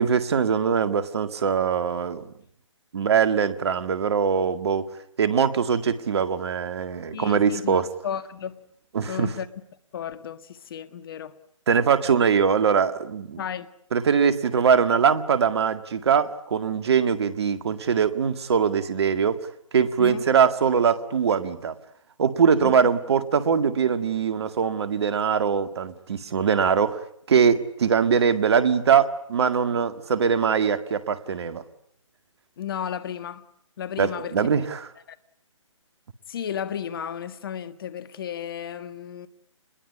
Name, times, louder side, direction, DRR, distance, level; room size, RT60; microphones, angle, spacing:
voice 1, 0.0-2.2 2.9-4.9 5.2-7.9 8.9-9.3 11.7-13.4 13.9-19.4 19.7-21.8 22.2-27.0 27.3-31.6 34.0-34.9, right 6 dB, 55° right, 1.9 m, -22 dB
voice 2, 7.1-8.6 9.1-9.5 9.9-11.3 13.4-13.7 20.0-20.2 22.6-22.7 32.6-33.5 33.8-34.5 35.1-35.2 36.3-39.3, left 9 dB, 45° left, 1.6 m, -33 dB
27.5 x 21.0 x 8.4 m
figure-of-eight pair, 145°, 16 cm